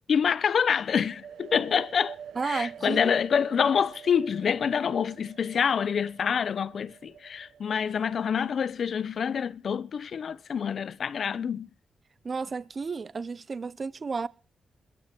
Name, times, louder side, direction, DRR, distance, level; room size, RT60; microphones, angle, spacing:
voice 1, 0.1-2.2 2.4-11.7, left 7 dB, 65° left, 0.9 m, -26 dB
sound 1, 0.9-8.6, right 8 dB, 80° right, 1.4 m, -47 dB
voice 2, 2.3-3.1 12.2-14.3, right 4 dB, 50° right, 1.0 m, -32 dB
22.0 x 8.3 x 6.1 m
supercardioid pair, 40°, 0 cm